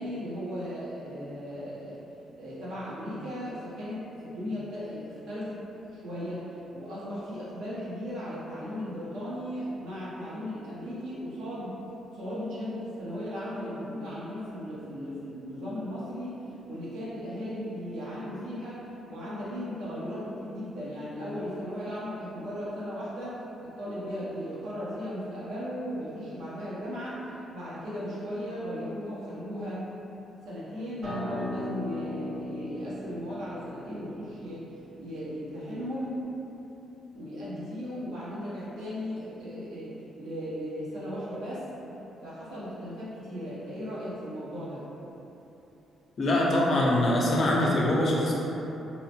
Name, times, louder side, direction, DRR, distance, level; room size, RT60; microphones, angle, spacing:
voice 1, 0.0-2.0 2.3-5.6 5.9-6.4 6.7-11.8 12.1-16.4 16.7-27.2 27.5-29.8 30.4-34.6 35.0-36.2 37.1-41.7 42.2-44.8, equal, 85° right, -9 dB, 0.8 m, -36 dB
Acoustic guitar, 31.0-36.2, left 1 dB, 50° right, 0.8 m, -39 dB
voice 2, 46.2-48.3, left 1 dB, 50° left, -4 dB, 0.5 m, -23 dB
2.8 x 2.0 x 2.8 m, 3.0 s
cardioid pair, 100°, 0 cm